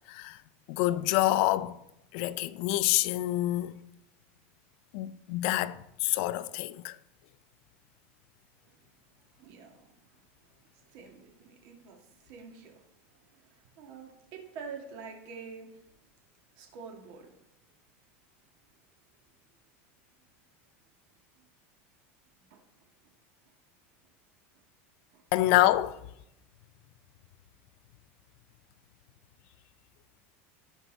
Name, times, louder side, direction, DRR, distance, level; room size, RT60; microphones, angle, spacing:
voice 1, 0.1-0.4 0.7-1.8 2.1-3.8 4.9-7.0 25.3-26.0, left 16 dB, 55° left, 0.4 m, -27 dB
voice 2, 9.3-15.9 16.5-17.4 22.5-22.6 25.1-25.2, right 5 dB, 55° right, 1.8 m, -48 dB
13.5 x 4.6 x 4.0 m
supercardioid pair, 155°, 7 cm